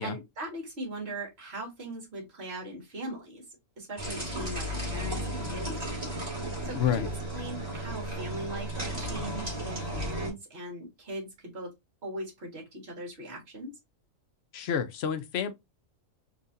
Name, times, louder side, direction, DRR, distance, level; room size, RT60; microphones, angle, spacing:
voice 1, 0.0-3.4 3.8-5.7 6.6-11.7 12.0-13.7, right 1 dB, 50° right, 1.8 m, -40 dB
sound 1, 4.0-10.3, right 1 dB, 30° right, 1.8 m, -34 dB
voice 2, 6.7-7.1 14.5-15.5, left 8 dB, 60° left, 0.7 m, -29 dB
3.9 x 2.7 x 2.5 m
omnidirectional pair, 1.4 m